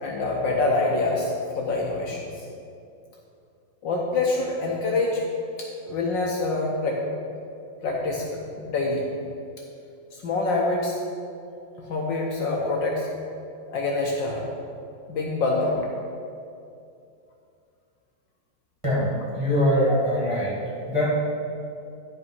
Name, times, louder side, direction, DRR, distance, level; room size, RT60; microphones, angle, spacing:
voice 1, 0.0-2.4 3.8-5.3 5.6-7.1 7.8-9.1 10.1-11.0 11.8-13.1 13.7-14.5 15.1-15.9, left 2 dB, 65° left, -1 dB, 1.4 m, -26 dB
voice 2, 18.8-20.6 20.9-21.1, equal, 15° right, -8 dB, 1.6 m, -23 dB
10.5 x 5.3 x 5.5 m, 2.5 s
omnidirectional pair, 2.4 m